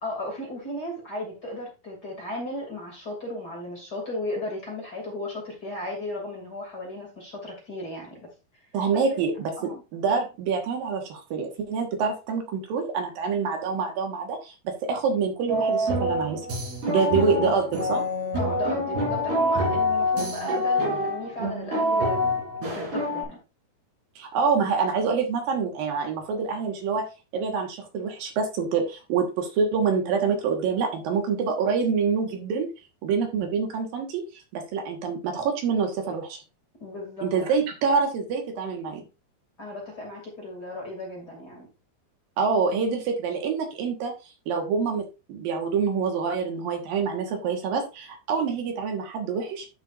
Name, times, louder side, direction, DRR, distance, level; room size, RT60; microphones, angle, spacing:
voice 1, 0.0-8.2 9.1-9.2 9.6-9.8 16.9-17.2 18.3-22.4 22.6-23.4 36.8-37.3 39.6-41.7, left 1 dB, 30° left, 2.6 m, -35 dB
voice 2, 8.7-9.5 9.9-16.4 16.9-18.0 24.2-27.0 27.3-32.7 33.0-36.4 37.2-39.0 42.4-44.1 44.5-49.7, right 5 dB, 70° right, 3.0 m, -26 dB
sound 1, 15.5-23.2, left 1 dB, 85° right, 5.5 m, -26 dB
12.0 x 6.8 x 2.5 m
omnidirectional pair, 4.5 m